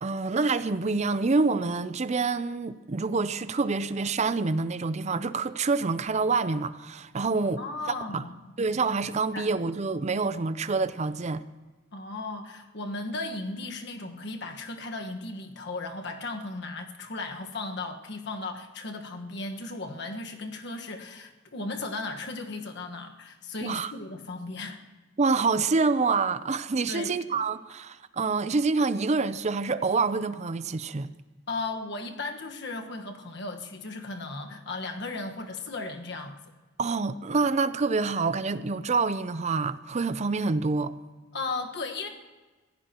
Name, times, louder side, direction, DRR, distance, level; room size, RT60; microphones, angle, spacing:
voice 1, 0.0-7.6 8.1-8.2 8.6-11.4 23.6-23.9 25.2-31.1 36.8-40.9, right 4 dB, 35° right, 0.5 m, -27 dB
voice 2, 7.4-8.3 9.3-9.5 11.9-24.8 26.9-27.4 31.5-36.4 41.3-42.1, left 3 dB, 60° left, 1.4 m, -36 dB
25.5 x 15.5 x 3.0 m
head